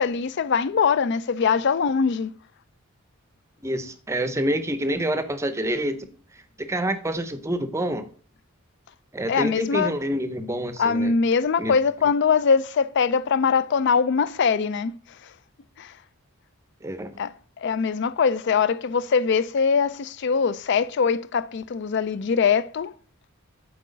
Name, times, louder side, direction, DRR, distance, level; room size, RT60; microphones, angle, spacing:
voice 1, 0.0-2.3 9.3-9.9 10.8-15.3 15.8-16.0 17.2-22.9, left 5 dB, 50° left, 0.4 m, -22 dB
voice 2, 3.6-6.1 6.3-8.1 9.1-11.1 11.6-11.7 16.8-17.2, right 1 dB, 15° right, 0.6 m, -27 dB
7.9 x 4.6 x 5.1 m
head